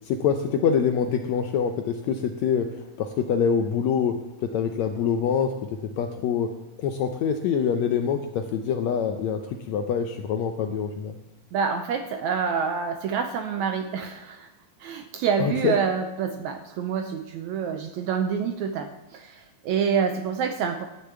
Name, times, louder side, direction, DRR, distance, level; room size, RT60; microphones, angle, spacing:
voice 1, 0.0-5.5 6.0-6.5 6.8-11.2 15.4-15.7, left 7 dB, 80° left, 6 dB, 1.6 m, -25 dB
voice 2, 11.5-14.5 14.8-20.9, right 6 dB, 80° right, 7 dB, 1.7 m, -27 dB
12.0 x 6.7 x 9.0 m, 0.98 s
omnidirectional pair, 3.9 m